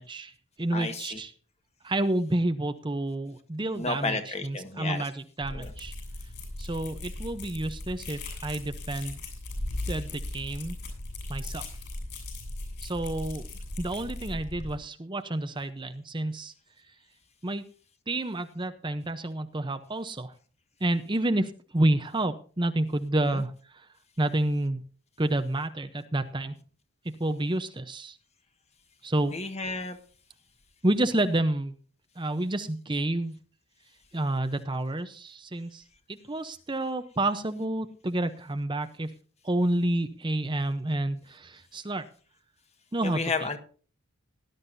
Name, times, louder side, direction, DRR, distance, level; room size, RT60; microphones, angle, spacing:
voice 1, 0.0-1.3 1.8-5.9 6.6-9.2 9.9-10.8 11.3-11.6 12.8-13.5 13.8-16.5 17.4-17.7 18.1-20.3 20.8-23.9 24.2-24.8 25.2-26.5 27.0-28.2 29.0-29.3 30.8-31.8 32.2-33.3 34.1-39.1 39.4-42.0 42.9-43.6, right 1 dB, 20° right, 9 dB, 0.7 m, -29 dB
voice 2, 0.7-1.2 3.8-5.1 5.5-5.7 23.2-23.4 29.3-30.0 43.0-43.6, left 3 dB, 30° left, 7 dB, 1.5 m, -32 dB
sound 1, 5.4-14.8, left 2 dB, 50° left, 7.1 m, -38 dB
19.0 x 11.5 x 2.7 m, 0.40 s
head